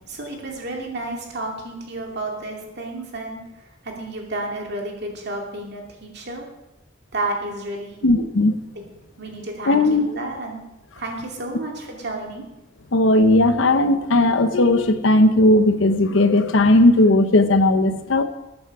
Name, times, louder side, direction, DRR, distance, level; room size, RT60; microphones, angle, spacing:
voice 1, 0.1-3.4 3.8-6.5 7.1-8.1 8.7-8.8 9.2-10.6 11.0-12.4, right 2 dB, 60° right, 1 dB, 2.4 m, -31 dB
voice 2, 8.0-8.5 9.7-10.1 12.9-18.2, left 2 dB, 85° left, 9 dB, 0.8 m, -16 dB
13.5 x 8.6 x 4.8 m, 0.95 s
head